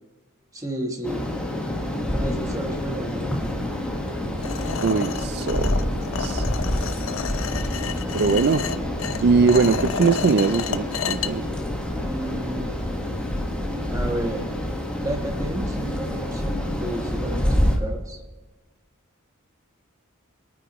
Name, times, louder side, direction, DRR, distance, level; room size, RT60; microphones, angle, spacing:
voice 1, 0.5-1.3 2.1-3.5 11.9-12.8 13.9-14.5 15.0-18.2, right 1 dB, 15° right, 2 dB, 1.3 m, -32 dB
sound 1, 1.0-17.8, left 1 dB, 5° left, 1.6 m, -27 dB
sound 2, 4.4-11.3, left 6 dB, 85° left, 0.6 m, -31 dB
voice 2, 4.8-5.8 6.1-6.5 8.1-8.6 9.2-11.4, right 4 dB, 55° right, 10 dB, 0.4 m, -21 dB
25.0 x 9.2 x 3.1 m, 1.3 s
head